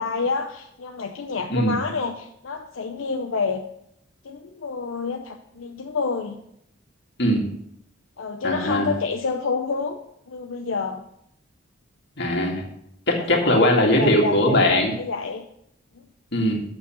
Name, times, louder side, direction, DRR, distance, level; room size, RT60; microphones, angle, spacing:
voice 1, 0.0-3.6 4.2-6.4 8.2-10.0 10.3-11.0 13.5-15.5, left 4 dB, 85° left, 4 dB, 0.6 m, -28 dB
voice 2, 8.4-8.9 12.2-12.6 13.1-14.9 16.3-16.6, left 1 dB, 60° left, 0 dB, 2.1 m, -20 dB
8.5 x 6.3 x 5.9 m, 0.74 s
head